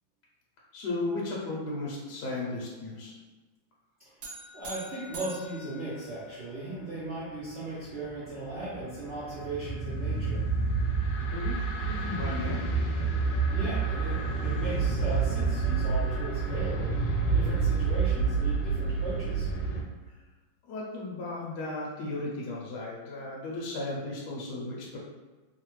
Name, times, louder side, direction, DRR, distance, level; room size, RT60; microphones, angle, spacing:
voice 1, 0.7-3.2 11.2-12.6 20.0-20.2 20.7-25.0, left 2 dB, 75° left, -4 dB, 1.0 m, -35 dB
sound 1, 4.2-6.7, right 2 dB, 65° right, 1.1 m, -44 dB
voice 2, 4.5-10.4 13.5-16.9 17.3-19.5, right 2 dB, 85° right, -10 dB, 0.6 m, -37 dB
sound 2, 8.1-19.8, right 4 dB, 90° left, 1.4 m, -28 dB
3.2 x 2.1 x 3.0 m, 1.2 s
omnidirectional pair, 2.1 m